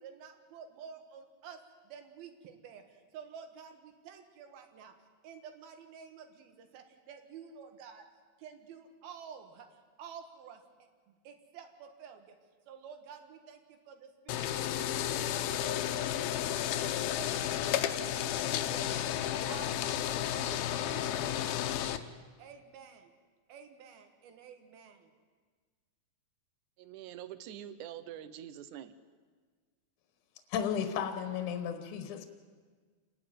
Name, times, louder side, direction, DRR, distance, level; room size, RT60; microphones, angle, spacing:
voice 1, 0.0-1.6 1.8-4.9 5.2-8.0 8.4-10.6 11.1-12.4 12.7-19.1 19.5-22.1 22.4-23.1 23.5-25.1, right 7 dB, 85° right, 6 dB, 3.4 m, -51 dB
sound 1, 14.3-22.0, left 11 dB, 90° left, 2.7 m, -32 dB
voice 2, 26.8-28.9, right 11 dB, 70° right, 12 dB, 2.0 m, -45 dB
voice 3, 30.5-32.2, left 8 dB, 65° left, 7 dB, 2.4 m, -34 dB
28.5 x 10.5 x 9.1 m, 1.5 s
omnidirectional pair, 4.2 m